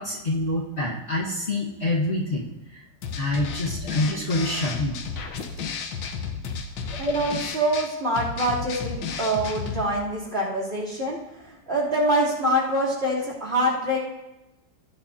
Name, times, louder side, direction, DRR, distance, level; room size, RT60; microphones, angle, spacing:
voice 1, 0.0-2.8 3.2-5.0, left 2 dB, 35° left, -5 dB, 1.7 m, -26 dB
sound 1, 3.0-9.9, left 5 dB, 85° left, 1.7 m, -33 dB
voice 2, 7.0-14.0, right 1 dB, 35° right, -7 dB, 3.4 m, -25 dB
18.5 x 9.1 x 2.8 m, 0.95 s
omnidirectional pair, 2.0 m